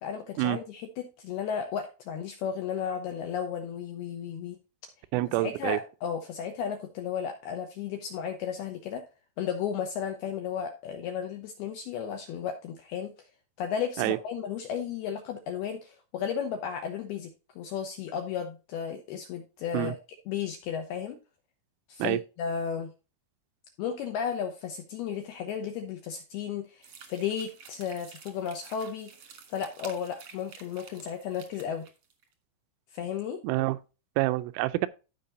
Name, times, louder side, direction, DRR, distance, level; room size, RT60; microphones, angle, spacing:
voice 1, 0.0-4.6 5.4-9.0 9.4-13.1 13.6-20.0 20.3-21.2 21.9-22.9 23.8-29.1 29.5-31.9 32.9-33.4, left 8 dB, 75° left, 2.3 m, -34 dB
voice 2, 5.1-5.8 14.0-14.2 19.7-19.9 22.0-22.2 33.4-33.8 34.2-34.9, right 18 dB, 85° right, 3.1 m, -27 dB
sound 1, 26.8-32.2, right 6 dB, 60° right, 1.7 m, -50 dB
15.5 x 5.3 x 2.6 m
omnidirectional pair, 5.7 m